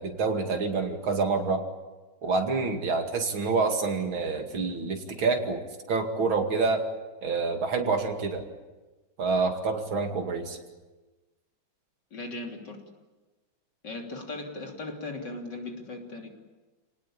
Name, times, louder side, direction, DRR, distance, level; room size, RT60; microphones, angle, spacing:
voice 1, 0.0-1.6 2.2-5.6 5.9-6.8 7.2-8.4 9.2-10.6, right 4 dB, 75° right, 4 dB, 3.2 m, -27 dB
voice 2, 12.1-12.8 13.8-16.3, left 2 dB, 55° left, 2 dB, 3.8 m, -38 dB
29.0 x 19.0 x 8.7 m, 1.2 s
omnidirectional pair, 2.2 m